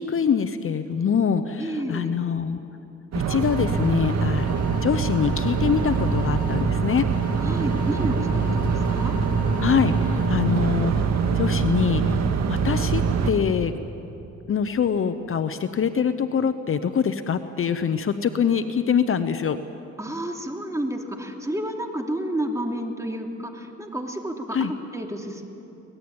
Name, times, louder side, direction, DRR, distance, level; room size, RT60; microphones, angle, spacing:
voice 1, 0.0-2.6 3.3-7.1 9.6-11.0 11.3-12.2 12.5-13.7 14.5-19.6 24.5-24.7, left 7 dB, 45° left, 10 dB, 1.0 m, -24 dB
voice 2, 1.6-2.2 7.4-9.1 20.0-25.4, right 1 dB, 10° right, 2 dB, 2.8 m, -30 dB
sound 1, 3.1-13.3, right 5 dB, 60° right, 2.0 m, -24 dB
sound 2, 3.4-3.9 4.4-6.6 7.1-10.3, left 4 dB, 20° left, 4.5 m, -41 dB
24.0 x 19.0 x 8.8 m, 2.9 s
cardioid pair, 90°, 30 cm